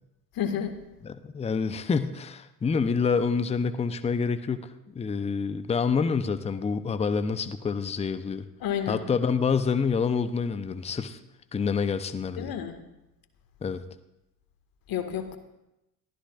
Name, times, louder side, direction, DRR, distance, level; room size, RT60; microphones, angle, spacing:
voice 1, 0.3-0.8 8.6-9.0 12.4-12.8 14.9-15.4, left 9 dB, 45° left, 7 dB, 1.9 m, -30 dB
voice 2, 1.0-4.7 4.9-8.4 8.9-11.2 11.5-12.5 13.6-13.8, left 5 dB, 15° left, 11 dB, 0.7 m, -27 dB
22.5 x 15.0 x 2.5 m, 0.90 s
hypercardioid pair, 65°, 49 cm